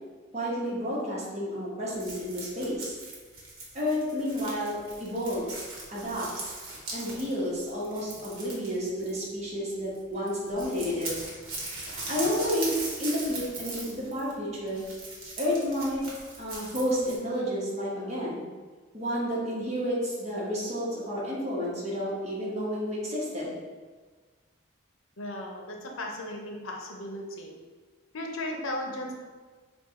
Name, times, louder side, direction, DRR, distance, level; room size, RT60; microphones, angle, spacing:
voice 1, 0.3-3.0 3.7-6.5 6.9-11.1 12.1-14.8 15.4-16.1 16.4-18.4 18.9-23.5, equal, 30° right, -7 dB, 1.1 m, -31 dB
sound 1, 1.9-9.6 9.8-10.0 10.3-17.2, right 2 dB, 80° right, 1.2 m, -40 dB
voice 2, 25.2-27.5 28.1-29.1, left 1 dB, 80° left, 1 dB, 0.7 m, -36 dB
4.6 x 2.4 x 3.6 m, 1.4 s
head